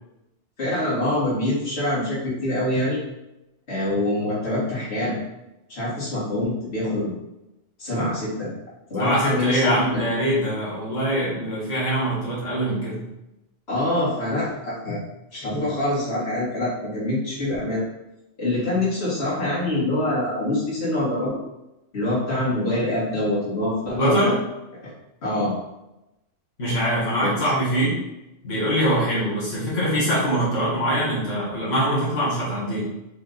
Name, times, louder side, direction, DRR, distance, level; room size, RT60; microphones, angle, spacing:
voice 1, 0.6-3.0 3.7-5.2 5.7-7.1 7.8-8.5 8.9-9.8 13.7-15.0 15.3-17.8 18.4-21.4 21.9-24.3 24.8-24.9 25.2-25.6 27.2-27.5, left 1 dB, 60° left, -8 dB, 2.1 m, -25 dB
voice 2, 9.0-13.0 24.0-24.3 26.6-27.9 28.4-32.9, equal, 90° left, -7 dB, 1.8 m, -23 dB
5.0 x 2.6 x 4.0 m, 0.93 s
omnidirectional pair, 1.3 m